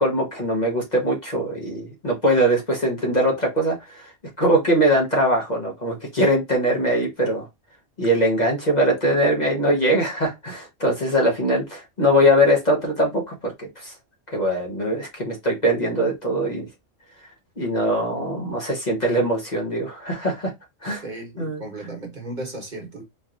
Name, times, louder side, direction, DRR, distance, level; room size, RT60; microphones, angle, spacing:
voice 1, 0.0-4.0 4.4-7.4 8.0-13.9 14.3-16.7 17.6-20.5 20.8-21.0 21.4-21.6, equal, 35° left, 1.1 m, -21 dB
voice 2, 21.0-23.0, right 2 dB, 40° right, 1.3 m, -35 dB
4.4 x 3.0 x 2.5 m
omnidirectional pair, 1.3 m